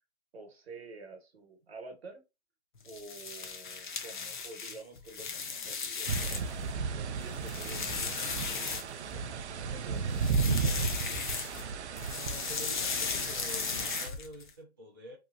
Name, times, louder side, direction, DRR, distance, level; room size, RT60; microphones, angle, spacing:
voice 1, 0.3-2.2 2.8-11.3, right 3 dB, 65° right, 1.0 m, -50 dB
sound 1, 2.8-6.6 7.1-9.3 10.1-11.7 12.0-14.5, left 5 dB, 45° left, 0.5 m, -36 dB
sound 2, 6.1-14.1, right 5 dB, 85° right, 0.5 m, -34 dB
voice 2, 12.0-15.2, equal, 20° right, 0.4 m, -47 dB
2.9 x 2.7 x 2.3 m
hypercardioid pair, 170°, 33 cm